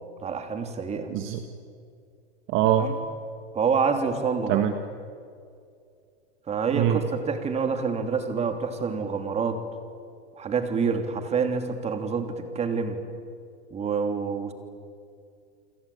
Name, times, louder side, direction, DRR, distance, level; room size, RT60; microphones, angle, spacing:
voice 1, 0.2-1.1 2.8-3.0 3.5-4.6 6.5-9.6 10.4-13.0 13.7-14.5, right 5 dB, 20° right, 7 dB, 3.1 m, -27 dB
voice 2, 1.1-1.4 2.5-2.9 4.5-4.7 6.7-7.0, right 11 dB, 40° right, 7 dB, 1.7 m, -23 dB
29.0 x 22.5 x 8.7 m, 2.3 s
hypercardioid pair, 135°, 32 cm